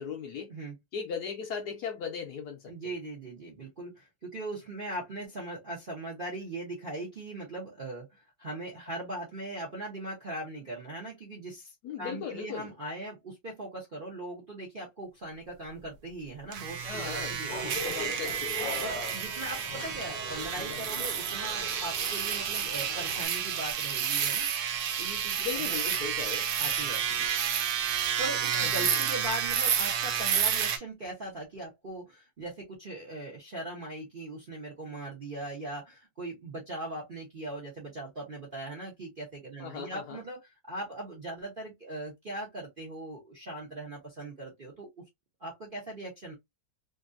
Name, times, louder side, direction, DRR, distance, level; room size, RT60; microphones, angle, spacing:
voice 1, 0.0-0.5 0.9-2.7 11.8-12.7 16.8-17.4 17.8-18.6 25.4-26.5 28.5-29.0 39.6-40.2, left 7 dB, 70° left, 1.0 m, -37 dB
voice 2, 2.7-17.7 18.8-24.5 25.0-25.9 26.6-27.3 28.2-40.4 40.6-44.9 45.4-46.3, right 1 dB, 50° right, 0.6 m, -40 dB
sound 1, 16.5-30.8, right 8 dB, 70° right, 1.0 m, -30 dB
sound 2, 17.5-23.3, left 2 dB, 45° left, 0.7 m, -40 dB
3.1 x 2.6 x 2.4 m
omnidirectional pair, 2.1 m